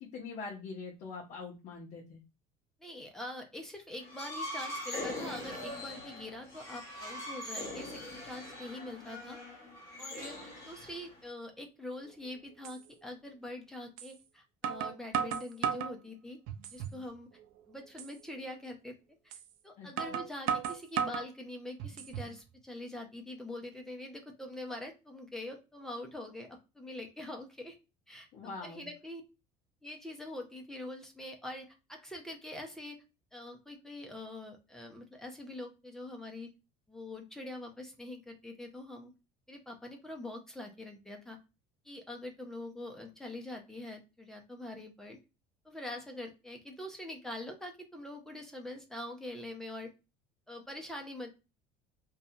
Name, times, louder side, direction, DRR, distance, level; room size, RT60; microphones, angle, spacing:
voice 1, 0.1-2.2 19.8-19.9 28.3-28.9, left 4 dB, 45° left, -3 dB, 0.7 m, -43 dB
voice 2, 2.8-9.4 10.0-16.4 16.7-17.3 17.7-19.0 19.2-19.3 19.6-27.8 28.1-28.3 28.6-29.2 29.8-33.0 33.3-36.5 36.9-39.1 39.5-41.4 41.8-45.2 45.6-49.9 50.5-51.3, left 1 dB, 5° left, 2 dB, 0.4 m, -44 dB
sound 1, 4.0-11.3, left 1 dB, 20° left, 1.0 m, -42 dB
sound 2, 12.1-12.2 12.6-12.8 14.0-14.1 14.6-16.0 16.5-17.0 17.4-17.5 18.0-18.1 19.3-19.4 20.0-21.3 21.8-22.3, right 8 dB, 65° right, 0.4 m, -34 dB
2.6 x 2.2 x 2.6 m, 0.28 s
cardioid pair, 170°, 16 cm